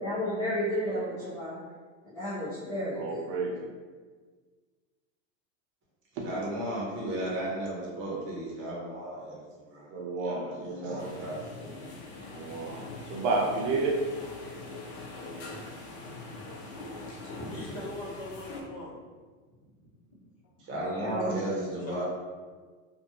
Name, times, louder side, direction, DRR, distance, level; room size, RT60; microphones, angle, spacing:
voice 1, 0.0-1.6 2.0-3.3 21.0-21.5, equal, 10° left, -13 dB, 0.6 m, -32 dB
voice 2, 2.9-3.6 6.2-6.3 9.9-11.1 12.3-14.0, right 3 dB, 55° right, -1 dB, 0.7 m, -31 dB
voice 3, 6.2-9.9 10.2-11.4 20.7-22.0, right 1 dB, 30° right, -5 dB, 0.9 m, -34 dB
sound 1, 11.0-18.6, left 2 dB, 60° left, 0.7 m, -43 dB
voice 4, 15.1-19.0 19.6-19.7 20.1-20.2 21.8-22.0, left 1 dB, 45° left, -7 dB, 1.1 m, -43 dB
2.5 x 2.3 x 2.7 m, 1.5 s
supercardioid pair, 140°, 40 cm